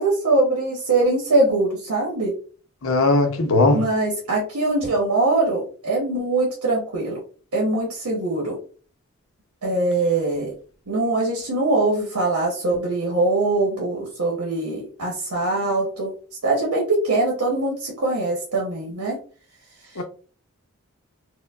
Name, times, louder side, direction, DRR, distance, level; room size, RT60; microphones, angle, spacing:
voice 1, 0.0-2.3 3.7-7.2 7.5-8.6 9.6-10.5 10.9-16.1 16.4-19.2 19.9-20.0, right 2 dB, 85° right, 0.9 m, -22 dB
voice 2, 2.8-3.8 20.0-20.1, left 2 dB, 70° left, 0.6 m, -18 dB
4.4 x 2.1 x 2.3 m
head